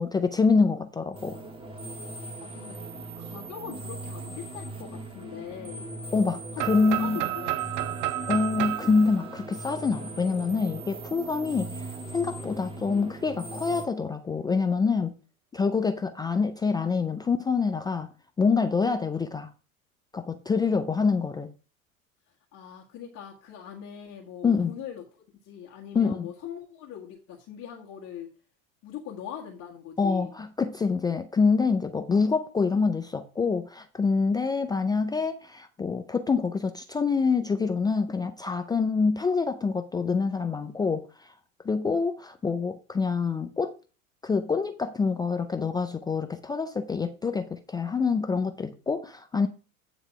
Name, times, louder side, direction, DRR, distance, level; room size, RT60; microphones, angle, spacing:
voice 1, 0.0-1.4 6.1-7.2 8.3-11.9 12.1-15.1 15.5-18.1 18.4-19.5 20.1-21.5 24.4-24.7 25.9-26.3 30.0-41.3 41.6-43.8 44.2-49.5, left 4 dB, 10° left, 0.4 m, -26 dB
sound 1, 1.1-13.8, right 2 dB, 15° right, 1.4 m, -39 dB
voice 2, 2.4-2.8 3.2-5.9 6.5-7.7 22.5-25.0 25.4-28.3 28.8-30.3, left 9 dB, 40° left, 1.8 m, -41 dB
sound 2, 6.6-10.4, right 15 dB, 40° right, 0.5 m, -32 dB
9.6 x 3.5 x 6.0 m
hypercardioid pair, 85°, 41 cm